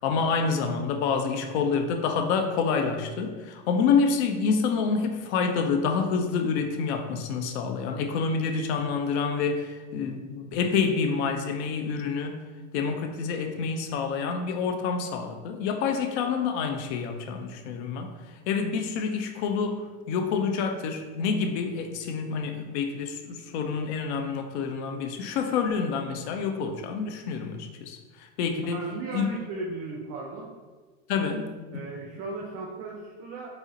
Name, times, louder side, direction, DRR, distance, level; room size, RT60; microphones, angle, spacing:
voice 1, 0.0-12.4 12.7-18.1 18.5-28.8 29.1-29.3 31.1-31.5 31.7-31.8, left 5 dB, 60° left, 5 dB, 0.5 m, -27 dB
voice 2, 28.7-30.5 31.7-33.5, right 3 dB, 40° right, -2 dB, 0.5 m, -36 dB
3.8 x 2.0 x 2.7 m, 1.3 s
hypercardioid pair, 105°, 37 cm